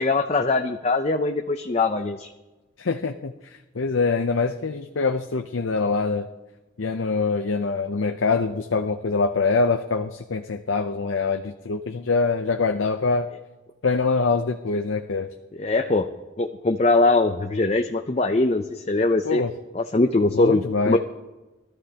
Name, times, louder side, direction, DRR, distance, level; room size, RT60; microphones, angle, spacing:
voice 1, 0.0-2.3 15.5-16.1 16.4-19.4 19.7-21.0, left 2 dB, 35° left, 5 dB, 0.6 m, -22 dB
voice 2, 2.8-6.3 6.8-13.3 13.8-15.3 19.2-19.5 20.3-21.0, left 4 dB, 80° left, 6 dB, 0.6 m, -24 dB
23.0 x 13.5 x 2.9 m, 1.1 s
head